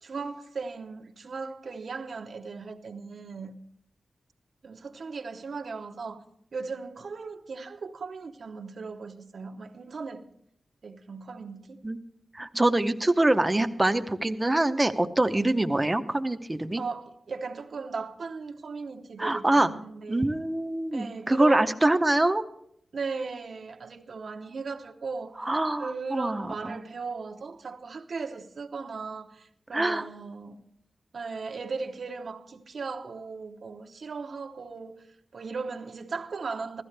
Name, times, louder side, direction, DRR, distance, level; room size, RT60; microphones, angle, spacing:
voice 1, 0.0-3.6 4.6-6.2 6.5-10.3 10.8-11.8 15.3-15.5 16.7-20.3 20.9-21.9 22.9-25.4 25.8-30.6 31.1-36.8, right 4 dB, 65° right, 0.9 m, -37 dB
voice 2, 12.3-16.8 19.2-19.7 20.1-22.4 25.4-26.8 29.7-30.0, right 1 dB, 15° right, 0.7 m, -24 dB
16.0 x 13.5 x 3.3 m
wide cardioid pair, 140°, 0 cm